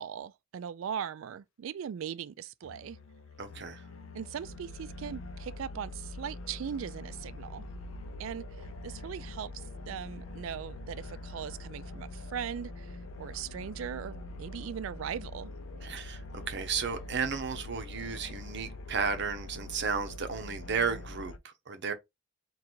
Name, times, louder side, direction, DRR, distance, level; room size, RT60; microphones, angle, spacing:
voice 1, 0.0-3.0 4.1-7.7 8.2-15.5, right 8 dB, 75° right, 0.3 m, -39 dB
sound 1, 2.6-21.4, left 2 dB, 90° left, 0.6 m, -44 dB
voice 2, 3.4-3.8 15.8-21.9, right 5 dB, 60° right, 0.8 m, -33 dB
3.9 x 2.4 x 4.4 m
head